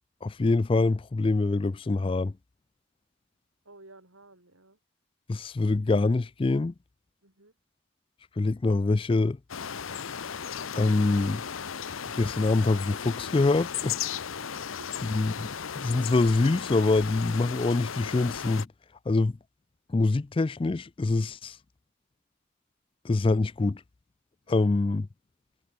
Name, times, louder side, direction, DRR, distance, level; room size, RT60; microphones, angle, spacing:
voice 1, 0.2-2.3 5.3-6.7 8.4-9.4 10.7-11.4 12.1-14.0 15.1-15.5 15.7-18.7 19.1-19.4 19.9-21.6 23.0-23.8 24.5-25.1, left 3 dB, 25° left, 0.3 m, -25 dB
voice 2, 3.7-4.8 7.2-7.5 14.5-14.9 24.5-24.7, right 2 dB, 90° right, 6.9 m, -54 dB
sound 1, 9.5-18.7, left 7 dB, 80° left, 0.8 m, -36 dB
head